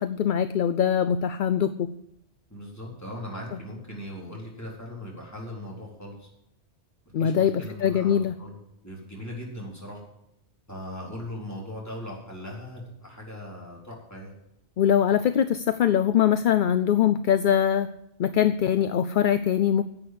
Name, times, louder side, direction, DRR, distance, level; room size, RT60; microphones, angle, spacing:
voice 1, 0.0-1.9 7.1-8.3 14.8-17.9 18.2-19.8, left 9 dB, 55° left, 12 dB, 0.6 m, -22 dB
voice 2, 2.5-6.3 7.2-8.6 8.8-10.0 10.7-14.3, left 1 dB, 15° left, -3 dB, 4.2 m, -39 dB
11.0 x 8.4 x 7.8 m, 0.84 s
omnidirectional pair, 1.2 m